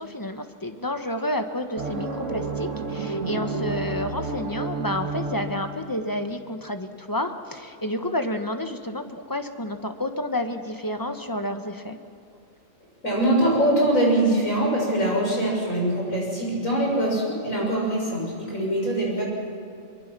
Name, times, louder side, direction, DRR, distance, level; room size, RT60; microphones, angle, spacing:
voice 1, 0.0-12.0, left 1 dB, 15° left, 6 dB, 1.3 m, -30 dB
sound 1, 1.8-6.1, right 3 dB, 70° right, 2.1 m, -31 dB
voice 2, 13.0-19.2, right 1 dB, 90° left, -2 dB, 7.1 m, -23 dB
24.0 x 23.5 x 6.2 m, 2.6 s
omnidirectional pair, 1.3 m